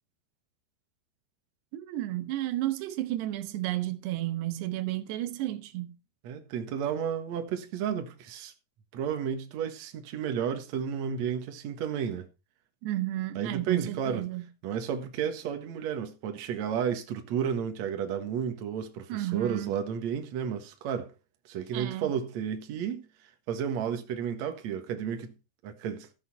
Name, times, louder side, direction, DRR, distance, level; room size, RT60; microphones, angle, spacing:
voice 1, 1.7-6.0 12.8-14.4 19.1-19.7 21.7-22.1, right 15 dB, 90° right, 3.1 m, -32 dB
voice 2, 6.2-8.5 8.9-12.3 13.4-14.3 14.6-21.1 21.5-23.1 23.5-25.3 25.6-26.1, right 8 dB, 55° right, 2.3 m, -32 dB
13.5 x 8.3 x 4.3 m
omnidirectional pair, 4.7 m